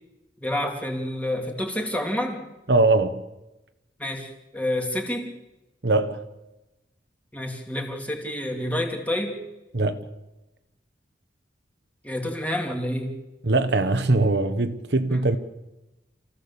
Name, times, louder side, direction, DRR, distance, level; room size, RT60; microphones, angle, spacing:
voice 1, 0.4-2.5 4.0-5.3 7.3-9.4 12.0-13.2 15.1-15.3, left 1 dB, 10° left, 2.9 m, -28 dB
voice 2, 2.7-3.2 5.8-6.2 9.7-10.1 13.4-15.4, right 2 dB, 65° right, 1.1 m, -21 dB
28.0 x 16.0 x 7.0 m
head